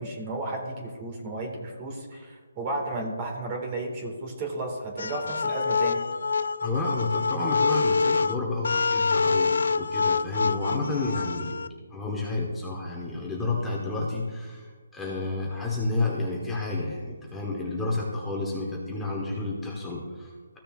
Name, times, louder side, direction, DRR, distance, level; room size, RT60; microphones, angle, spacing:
voice 1, 0.0-6.0, right 2 dB, 25° right, 2 dB, 1.9 m, -33 dB
sound 1, 5.0-11.7, left 4 dB, 70° left, 0.4 m, -26 dB
voice 2, 6.6-11.6 11.9-20.6, left 2 dB, 5° left, -4 dB, 1.3 m, -30 dB
15.0 x 6.7 x 2.5 m, 1.5 s
figure-of-eight pair, 155°, 0 cm